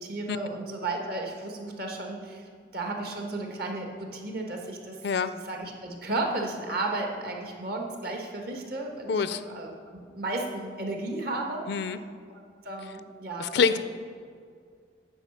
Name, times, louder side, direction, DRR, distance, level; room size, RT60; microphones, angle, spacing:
voice 1, 0.0-5.0 5.3-11.9 12.3-13.8, right 2 dB, 55° right, 1 dB, 1.4 m, -34 dB
voice 2, 9.1-9.4 11.7-12.0 13.4-13.8, left 5 dB, 60° left, 13 dB, 0.4 m, -25 dB
9.9 x 4.8 x 7.1 m, 2.2 s
head